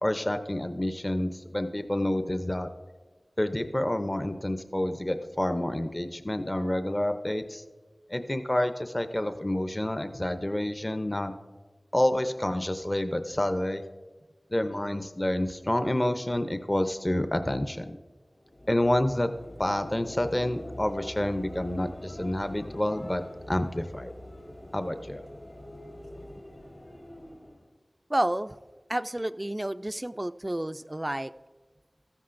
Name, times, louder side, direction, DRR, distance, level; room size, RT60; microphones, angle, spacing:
voice 1, 0.0-2.7 3.4-7.6 8.1-11.3 11.9-13.8 14.5-17.9 18.7-19.3 19.6-23.2 23.5-24.1 24.7-25.2, left 1 dB, 25° left, 8 dB, 0.6 m, -28 dB
sound 1, 18.3-27.7, left 1 dB, 60° left, 2.4 m, -44 dB
voice 2, 28.1-28.6 28.9-31.3, right 1 dB, 25° right, 13 dB, 0.3 m, -30 dB
15.5 x 14.0 x 2.5 m, 1.3 s
wide cardioid pair, 60°, 0 cm